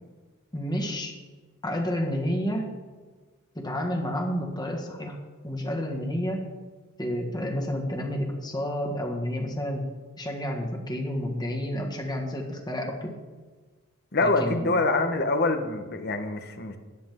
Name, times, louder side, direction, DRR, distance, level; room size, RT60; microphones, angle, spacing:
voice 1, 0.5-1.1 1.6-2.8 3.5-5.2 5.4-6.5 7.0-9.8 10.2-13.1 14.2-14.7, equal, 20° left, 1 dB, 1.7 m, -30 dB
voice 2, 14.1-16.8, left 2 dB, 50° left, 7 dB, 1.1 m, -25 dB
13.5 x 10.0 x 3.7 m, 1.4 s
head